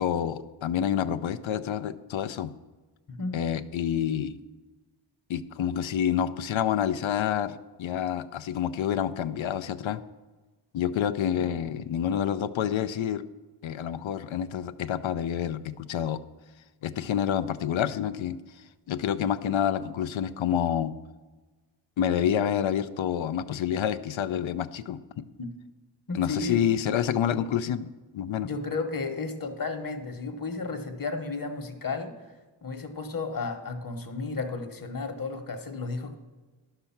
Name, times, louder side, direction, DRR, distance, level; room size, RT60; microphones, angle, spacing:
voice 1, 0.0-2.5 3.3-4.4 5.3-10.0 10.7-13.2 13.6-16.2 16.8-18.4 18.9-20.9 22.0-25.3 26.1-28.5, left 9 dB, 70° left, 12 dB, 0.7 m, -28 dB
voice 2, 3.1-3.4 25.4-25.5 26.1-26.6 28.4-32.2 32.6-36.2, left 3 dB, 45° left, 6 dB, 1.3 m, -33 dB
10.5 x 6.9 x 5.8 m, 1.3 s
cardioid pair, 85°, 49 cm